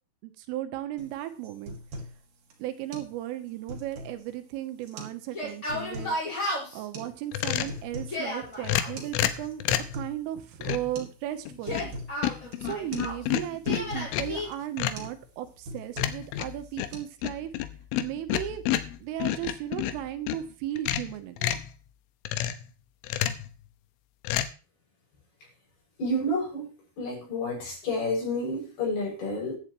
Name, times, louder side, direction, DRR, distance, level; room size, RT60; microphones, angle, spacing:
voice 1, 0.2-1.8 2.6-6.2 6.7-9.6 9.9-12.0 12.6-17.5 18.0-18.6 19.0-21.6, right 13 dB, 85° right, 8 dB, 3.7 m, -35 dB
sound 1, 1.0-1.1 1.4-2.2 2.5-2.6 2.9-3.1 3.5-4.2 4.8-5.2 5.5-6.2 6.9-7.1 7.5-8.2 8.5-8.6 9.0-9.1 9.5-10.2 10.5-10.6 11.0-11.2 11.4-12.1 12.5-12.7 12.9-13.1 13.4-14.1 14.5-14.7 15.0-15.2 15.5-16.3 16.6-17.0, right 1 dB, 50° right, 3.2 m, -40 dB
Yell, 5.2-6.8 7.9-8.9 11.5-13.2 13.6-14.5, left 1 dB, 15° left, 5.2 m, -33 dB
sound 2, 7.3-7.8 8.6-10.0 10.6-10.9 11.5-12.0 12.2-14.4 14.8-15.1 16.0-20.4 20.8-21.7 22.3-22.7 23.0-23.5 24.2-24.5, left 12 dB, 85° left, 3.3 m, -30 dB
voice 2, 26.0-26.7 27.0-29.6, left 1 dB, 50° left, -2 dB, 8.6 m, -29 dB
14.5 x 11.5 x 3.1 m, 0.34 s
omnidirectional pair, 5.7 m